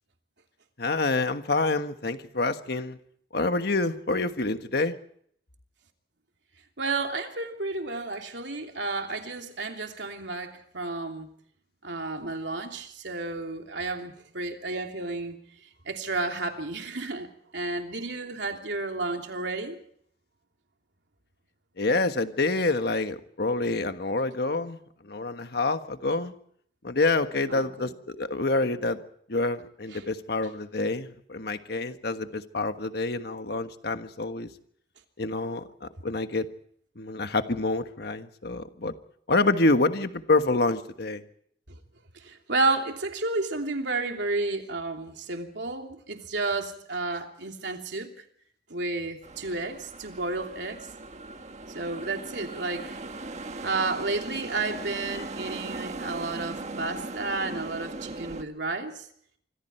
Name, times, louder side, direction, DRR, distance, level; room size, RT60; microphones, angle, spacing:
voice 1, 0.8-3.0 3.3-4.9 21.8-24.8 25.0-26.3 26.8-29.0 29.3-34.5 35.2-36.5 36.9-38.9 39.3-41.2, left 2 dB, 65° left, 1.4 m, -27 dB
voice 2, 6.8-11.3 11.8-15.4 15.9-17.3 17.5-19.8 27.5-27.9 29.9-30.0 41.7-41.8 42.2-48.1 48.7-50.8 51.7-53.0 53.5-59.1, right 3 dB, 80° right, 3.0 m, -31 dB
sound 1, 49.2-58.4, right 2 dB, 40° right, 1.4 m, -39 dB
26.0 x 25.5 x 4.5 m
head